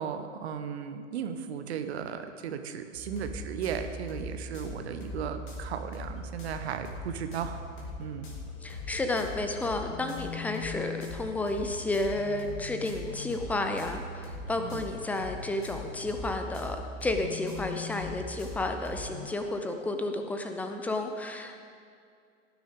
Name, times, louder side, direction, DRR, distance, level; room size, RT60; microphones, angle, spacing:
voice 1, 0.0-7.6 8.0-8.3 14.6-14.9, right 8 dB, 50° right, 8 dB, 1.1 m, -36 dB
sound 1, 2.9-19.2, left 2 dB, 40° left, 3.1 m, -40 dB
voice 2, 8.6-21.6, left 2 dB, 5° left, 5 dB, 0.5 m, -32 dB
17.5 x 10.0 x 3.7 m, 2.3 s
figure-of-eight pair, 100°, 40 cm